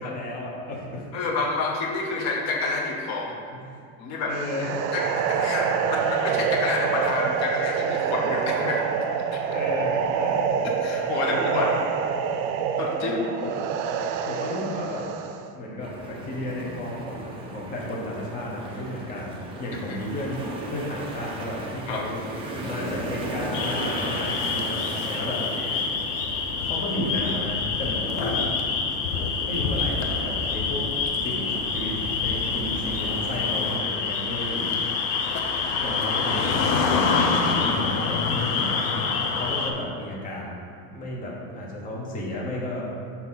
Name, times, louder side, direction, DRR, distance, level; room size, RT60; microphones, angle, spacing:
voice 1, 0.0-1.0 3.5-3.6 4.3-4.8 9.4-10.5 11.3-11.7 13.0-13.5 14.2-15.1 15.5-22.2 22.5-25.4 26.6-28.5 29.5-30.8 31.2-34.7 35.1-35.3 35.6-40.6 40.9-42.8, left 1 dB, 20° left, -3 dB, 0.9 m, -33 dB
voice 2, 1.1-3.4 4.0-9.2 10.8-11.7 12.8-13.2 19.9-20.0 21.9-22.0, left 3 dB, 45° left, 0 dB, 0.8 m, -29 dB
sound 1, 4.4-15.5, right 7 dB, 75° right, 0.5 m, -26 dB
sound 2, 15.8-33.8, right 1 dB, 15° right, 0.4 m, -36 dB
sound 3, 23.5-39.7, left 5 dB, 80° left, 0.8 m, -26 dB
6.2 x 2.9 x 5.6 m, 2.2 s
cardioid pair, 160°, 39 cm